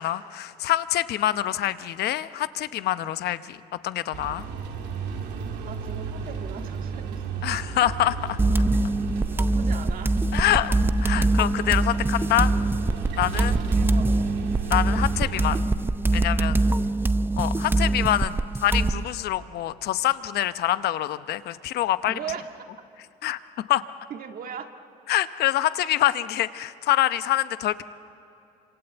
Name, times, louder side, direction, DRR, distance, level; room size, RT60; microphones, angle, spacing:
voice 1, 0.0-3.6 3.8-4.4 7.4-8.4 10.3-10.7 11.0-12.5 13.2-13.6 14.7-15.6 16.1-16.6 17.4-18.3 18.6-22.1 23.2-23.4 23.7-23.8 25.1-27.8, left 13 dB, 70° left, 13 dB, 0.9 m, -25 dB
sound 1, 4.1-15.6, right 6 dB, 80° right, 2.7 m, -34 dB
voice 2, 5.6-7.6 9.3-10.2 13.3-14.4 16.7-17.2 22.1-22.7 24.1-24.7, right 8 dB, 60° right, 5 dB, 1.9 m, -39 dB
sound 2, 8.4-19.0, right 2 dB, 15° right, 0.6 m, -23 dB
27.5 x 26.0 x 8.1 m, 2.7 s
cardioid pair, 110°, 17 cm